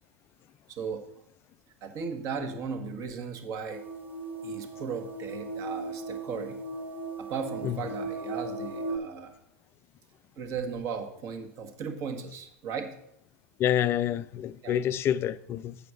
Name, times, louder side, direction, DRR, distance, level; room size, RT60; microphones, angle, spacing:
voice 1, 0.7-1.0 1.8-3.8 4.4-6.6 7.2-9.3 10.4-12.9 14.6-14.8, right 6 dB, 40° right, 1.5 m, -36 dB
sound 1, 3.7-9.0, right 2 dB, 25° right, 1.8 m, -37 dB
voice 2, 13.6-15.8, left 10 dB, 30° left, 0.4 m, -27 dB
8.5 x 5.1 x 6.2 m
hypercardioid pair, 105°, 8 cm